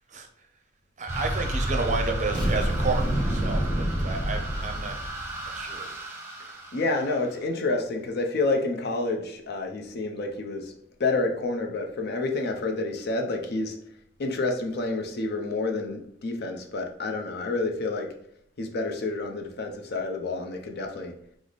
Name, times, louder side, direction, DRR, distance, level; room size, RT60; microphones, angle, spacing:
voice 1, 1.0-5.0 5.5-5.9, right 4 dB, 40° right, 4 dB, 0.5 m, -31 dB
sound 1, 1.1-7.4, right 1 dB, 15° right, 0.8 m, -32 dB
sound 2, 2.3-5.1, right 1 dB, ahead, 1.3 m, -28 dB
voice 2, 6.7-10.7 11.0-13.8 14.2-18.1 18.6-21.1, left 3 dB, 55° left, 3 dB, 0.6 m, -29 dB
4.7 x 2.0 x 3.9 m, 0.68 s
head